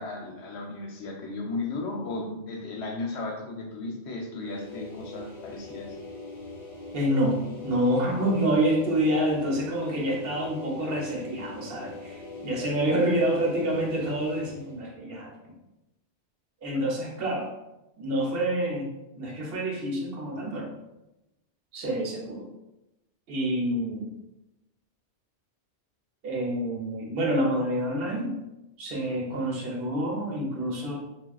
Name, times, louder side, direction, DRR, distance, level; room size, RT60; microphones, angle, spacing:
voice 1, 0.0-5.9, left 3 dB, 70° left, 1 dB, 0.9 m, -35 dB
sound 1, 4.4-14.8, left 3 dB, 30° left, 0.9 m, -42 dB
voice 2, 6.9-15.5 16.6-17.5 18.0-20.7 21.7-22.5 23.3-24.1 26.2-28.4 28.8-31.0, right 1 dB, 60° right, -2 dB, 0.8 m, -27 dB
3.4 x 2.3 x 2.3 m, 0.94 s
omnidirectional pair, 1.2 m